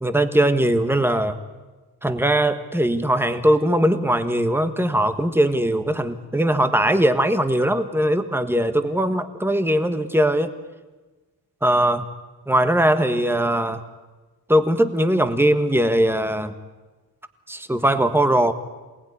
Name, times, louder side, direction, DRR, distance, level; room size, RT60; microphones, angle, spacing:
voice 1, 0.0-1.4 2.0-10.5 11.6-12.1 12.5-13.8 14.5-16.5 17.5-18.5, right 1 dB, 5° right, 9 dB, 1.4 m, -20 dB
27.5 x 19.0 x 9.9 m, 1.2 s
wide cardioid pair, 140°, 39 cm